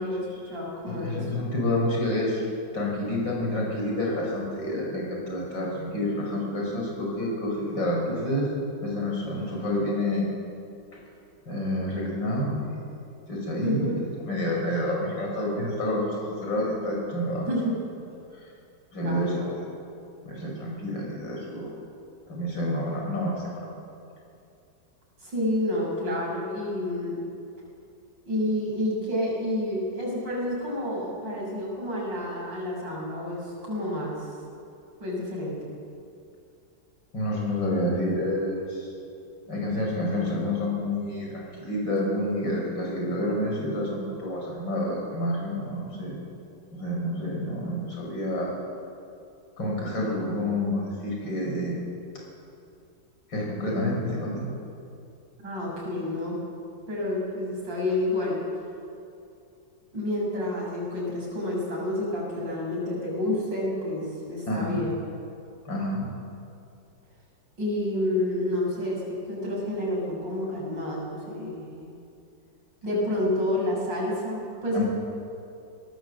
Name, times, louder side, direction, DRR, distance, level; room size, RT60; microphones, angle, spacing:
voice 1, 0.0-1.2 13.6-14.0 17.5-17.8 19.0-19.5 25.2-27.2 28.3-34.3 35.0-35.7 55.4-56.4 56.9-58.4 59.9-65.0 67.6-71.9 72.8-74.9, left 1 dB, 85° right, -3 dB, 7.4 m, -29 dB
voice 2, 0.9-2.5 2.7-8.5 8.8-10.3 11.5-12.8 13.3-13.9 14.2-17.5 18.3-18.4 18.9-19.8 20.2-21.7 22.3-23.7 37.1-38.9 39.5-46.2 46.7-48.5 49.6-51.8 53.3-54.5 64.5-64.8 65.6-66.1 74.7-74.8, left 1 dB, 85° left, -2 dB, 6.5 m, -28 dB
21.5 x 19.0 x 8.0 m, 2.5 s
omnidirectional pair, 1.9 m